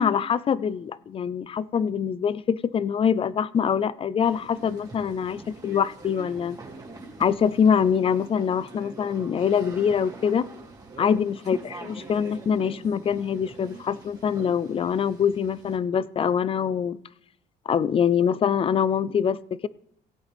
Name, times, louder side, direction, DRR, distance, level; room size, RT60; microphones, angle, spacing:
voice 1, 0.0-6.6 7.2-10.5 11.0-17.0 17.7-19.7, left 7 dB, 35° left, 19 dB, 0.4 m, -24 dB
sound 1, 4.2-15.8, right 2 dB, 20° right, 2.5 m, -44 dB
16.5 x 8.8 x 3.5 m, 0.72 s
cardioid pair, 110°, 17 cm